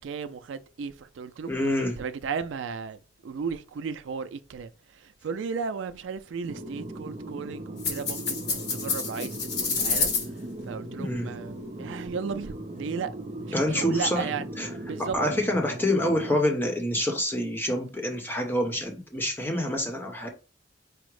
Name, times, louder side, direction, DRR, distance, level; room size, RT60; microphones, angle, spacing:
voice 1, 0.0-1.5 2.0-3.0 3.2-4.7 5.2-9.4 9.6-10.1 10.7-13.1 13.4-13.5 13.7-14.4 14.9-15.1, right 5 dB, 80° right, 0.4 m, -34 dB
voice 2, 1.5-2.0 11.0-11.3 13.5-14.3 14.6-14.7 15.0-20.3, left 1 dB, 10° left, 0.9 m, -27 dB
Deep Ambience, 6.5-16.4, right 1 dB, 35° right, 0.6 m, -38 dB
sound 1, 7.8-10.3, left 5 dB, 60° left, 1.5 m, -28 dB
4.9 x 2.0 x 4.6 m
head